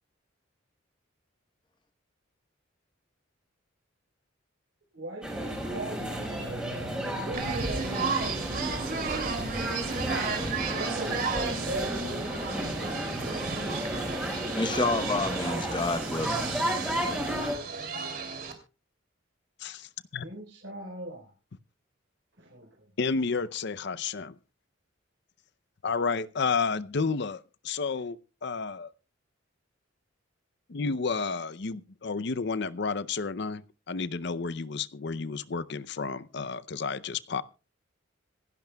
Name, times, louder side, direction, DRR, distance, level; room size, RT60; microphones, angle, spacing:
voice 1, 4.9-8.3 10.5-13.8 20.2-21.3 22.4-22.7, right 1 dB, 60° right, 4.1 m, -40 dB
sound 1, 5.2-17.6, right 1 dB, 5° right, 4.7 m, -33 dB
sound 2, 7.3-18.5, right 5 dB, 45° right, 2.9 m, -34 dB
voice 2, 14.5-16.5, left 2 dB, 25° left, 1.0 m, -29 dB
voice 3, 19.6-20.3 23.0-24.3 25.8-28.2 28.4-28.9 30.7-37.4, left 4 dB, 55° left, 0.6 m, -31 dB
26.0 x 11.0 x 2.3 m
head